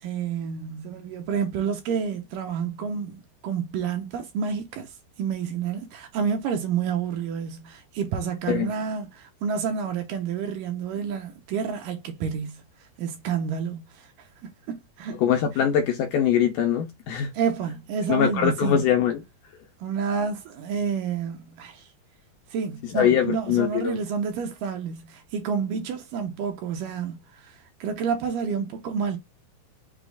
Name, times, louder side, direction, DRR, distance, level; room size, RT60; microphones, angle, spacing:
voice 1, 0.0-4.9 5.2-12.6 13.0-14.1 14.7-15.2 15.5-15.6 17.3-18.9 19.8-21.9 22.5-29.2, right 6 dB, 75° right, 2.2 m, -29 dB
voice 2, 15.2-17.3 18.1-19.2 22.9-24.0, left 9 dB, 80° left, 2.0 m, -22 dB
6.1 x 2.3 x 3.4 m
omnidirectional pair, 4.3 m